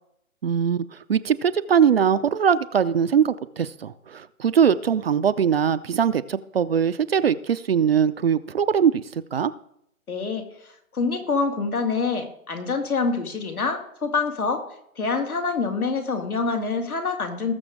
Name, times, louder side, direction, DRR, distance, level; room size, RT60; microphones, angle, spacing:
voice 1, 0.4-0.8 1.1-9.5, right 7 dB, 45° right, 14 dB, 0.5 m, -21 dB
voice 2, 10.1-14.6 15.0-17.5, left 4 dB, 80° left, 5 dB, 2.4 m, -26 dB
19.5 x 6.7 x 3.6 m, 0.75 s
figure-of-eight pair, 135°, 43 cm